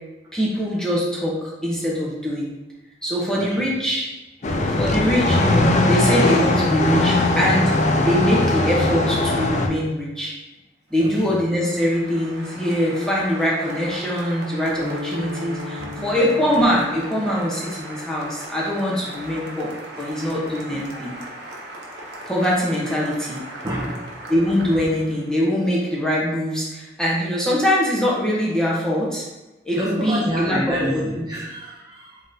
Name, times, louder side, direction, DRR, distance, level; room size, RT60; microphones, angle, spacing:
voice 1, 0.3-2.5 3.0-4.1 4.7-7.7 8.0-10.3 10.9-19.7 20.0-21.1 22.3-23.4 24.3-29.3 29.6-30.9 31.2-31.3, equal, 5° left, -6 dB, 0.9 m, -23 dB
sound 1, 4.4-9.7, left 2 dB, 40° left, 0.3 m, -19 dB
Applause, 10.9-25.4, right 1 dB, 70° right, 0.8 m, -38 dB
sound 2, 14.8-19.1, left 3 dB, 65° left, 1.0 m, -37 dB
voice 2, 23.6-24.2 29.8-32.2, equal, 20° right, -6 dB, 0.5 m, -28 dB
3.8 x 3.8 x 2.7 m, 1.1 s
head